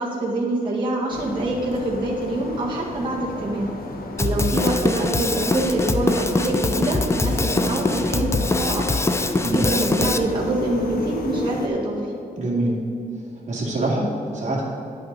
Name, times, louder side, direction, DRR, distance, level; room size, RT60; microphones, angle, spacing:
voice 1, 0.0-3.7 4.2-8.8 9.5-12.0, right 2 dB, 30° right, -5 dB, 1.5 m, -25 dB
sound 1, 1.1-11.7, left 2 dB, 75° left, 1.0 m, -33 dB
Drum kit, 4.2-10.2, left 2 dB, 15° left, 0.4 m, -23 dB
voice 2, 9.4-9.7 12.4-12.8 13.5-14.6, right 1 dB, 50° right, -4 dB, 2.2 m, -24 dB
10.0 x 8.3 x 4.0 m, 2.7 s
wide cardioid pair, 155°, 16 cm